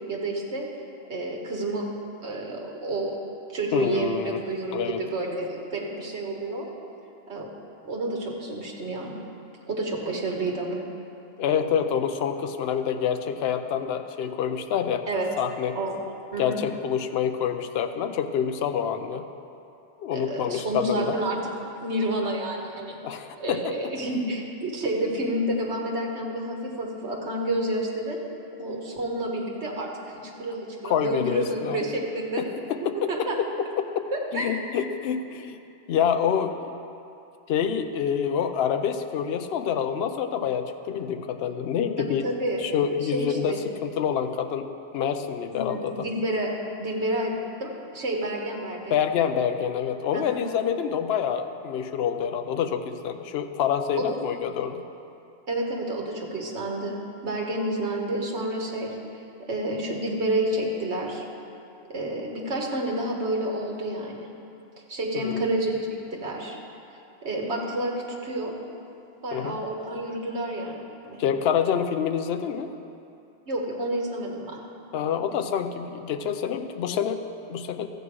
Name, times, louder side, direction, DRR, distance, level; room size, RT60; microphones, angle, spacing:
voice 1, 0.1-0.7 1.1-1.8 2.2-3.2 3.5-6.7 7.3-7.5 7.8-9.1 9.7-10.8 15.1-15.3 15.7-16.0 16.3-16.6 20.1-21.4 21.8-23.0 23.4-28.2 28.6-32.4 32.8-33.5 34.1-34.5 42.0-42.6 43.0-43.6 45.5-46.5 46.8-47.3 47.6-49.0 50.1-50.4 53.9-54.2 55.5-59.0 59.4-61.2 61.9-64.3 64.9-65.8 66.1-66.6 67.2-67.9 68.2-68.5 69.2-71.2 73.5-74.6, right 1 dB, 85° right, -1 dB, 1.6 m, -29 dB
voice 2, 3.7-4.4 4.7-5.0 11.4-15.1 15.4-15.8 16.4-19.2 20.0-21.0 23.0-23.9 30.8-31.8 32.4-33.1 33.8-34.0 34.3-35.6 35.9-36.7 37.5-42.3 42.6-46.1 48.9-54.8 65.1-65.4 69.3-69.6 71.2-72.7 74.9-77.9, left 8 dB, 70° left, 8 dB, 0.8 m, -27 dB
14.0 x 8.0 x 4.7 m, 2.7 s
omnidirectional pair, 1.1 m